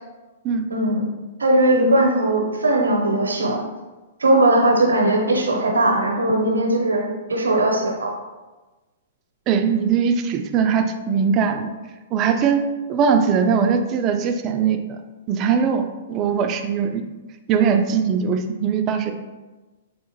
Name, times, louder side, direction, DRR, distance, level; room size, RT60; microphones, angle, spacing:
voice 1, 0.7-1.1 1.4-3.6 4.2-8.1, right 1 dB, 85° right, 1 dB, 0.7 m, -19 dB
voice 2, 9.5-11.7 12.1-15.0 15.3-17.0 17.5-19.1, right 6 dB, 35° right, 6 dB, 0.4 m, -20 dB
4.5 x 2.5 x 2.8 m, 1.2 s
hypercardioid pair, 115°, 0 cm